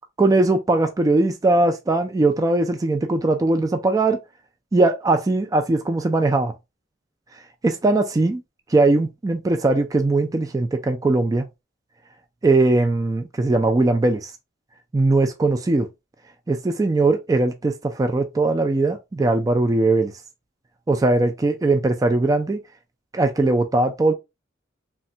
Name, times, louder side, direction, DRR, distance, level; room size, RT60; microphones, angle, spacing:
voice 1, 0.2-4.2 4.7-6.5 7.6-8.4 8.7-11.5 12.4-14.3 14.9-15.9 16.5-20.1 20.9-22.6 23.1-24.1, right 2 dB, 20° right, 0.3 m, -20 dB
3.3 x 2.2 x 2.7 m
head